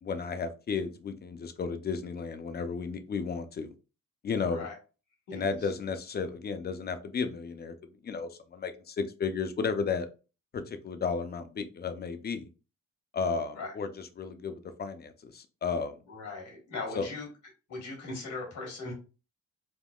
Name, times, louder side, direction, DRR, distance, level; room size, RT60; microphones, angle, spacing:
voice 1, 0.0-3.7 4.2-4.7 5.3-7.7 8.0-10.1 10.5-12.5 13.1-16.0 16.9-17.1, left 5 dB, 35° left, 9 dB, 0.4 m, -33 dB
voice 2, 16.1-17.3 17.7-18.9, left 3 dB, 80° left, -1 dB, 1.5 m, -39 dB
3.5 x 2.1 x 2.3 m, 0.33 s
cardioid pair, 90°, 30 cm